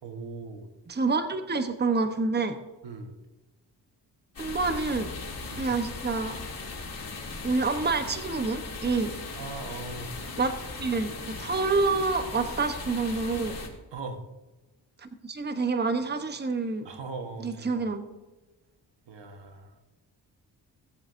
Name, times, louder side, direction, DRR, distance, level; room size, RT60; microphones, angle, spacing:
voice 1, 0.0-0.7 2.8-3.2 5.5-5.7 9.4-10.1 13.9-14.2 16.8-17.9 19.1-19.8, right 3 dB, 75° right, 5 dB, 1.5 m, -39 dB
voice 2, 0.9-2.6 4.4-5.1 5.6-6.4 7.4-9.1 10.4-10.5 10.8-13.6 15.0-16.9 17.4-18.1, right 3 dB, 25° right, 8 dB, 1.0 m, -27 dB
sound 1, 4.3-13.7, left 3 dB, 50° left, 2.9 m, -38 dB
17.5 x 8.0 x 2.6 m, 1.1 s
cardioid pair, 65°, 43 cm